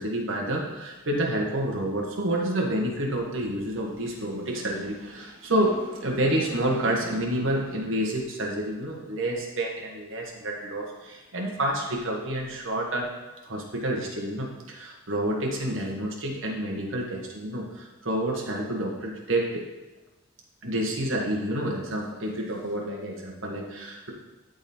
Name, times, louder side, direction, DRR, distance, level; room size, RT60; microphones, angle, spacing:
voice 1, 0.0-13.1 13.5-19.6 20.6-24.1, right 1 dB, 70° right, -1 dB, 1.5 m, -29 dB
12.0 x 4.0 x 4.4 m, 1.1 s
head